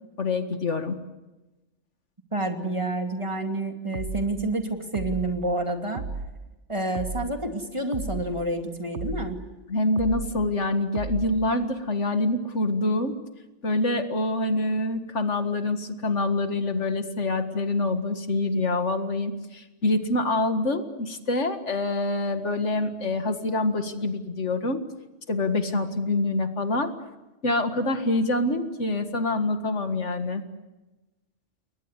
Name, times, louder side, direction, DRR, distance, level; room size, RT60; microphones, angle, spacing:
voice 1, 0.2-1.0 9.7-13.2 13.6-24.8 25.3-26.9 27.4-30.4, left 2 dB, 70° left, 7 dB, 2.2 m, -26 dB
voice 2, 2.3-6.0 6.7-9.4, right 2 dB, 25° right, 4 dB, 2.7 m, -29 dB
sound 1, 3.9-4.3 4.9-5.3 5.9-6.3 6.9-7.3 7.9-8.3 8.9-9.3 10.0-10.4 11.0-11.4, right 4 dB, 70° right, 1.5 m, -34 dB
29.5 x 22.0 x 8.3 m, 1.1 s
omnidirectional pair, 1.2 m